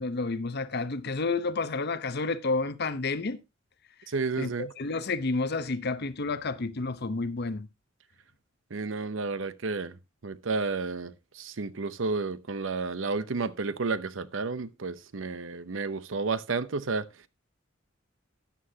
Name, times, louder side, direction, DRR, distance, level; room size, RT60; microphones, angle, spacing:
voice 1, 0.0-3.4 4.4-7.7, left 3 dB, 55° left, 0.8 m, -30 dB
voice 2, 4.1-4.7 8.7-17.1, right 4 dB, 70° right, 0.7 m, -31 dB
12.5 x 9.5 x 2.8 m
head